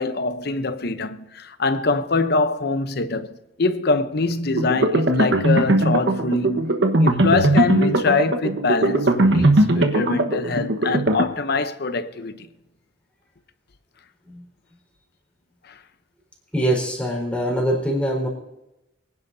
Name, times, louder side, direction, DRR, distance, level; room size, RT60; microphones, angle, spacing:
voice 1, 0.0-3.3 3.6-6.7 7.0-12.5 15.7-15.8, left 3 dB, 55° left, 0.8 m, -24 dB
sound 1, 4.5-11.2, right 1 dB, 70° right, 1.3 m, -19 dB
voice 2, 16.5-18.3, right 1 dB, 5° left, 4.5 m, -23 dB
24.5 x 10.5 x 2.7 m
head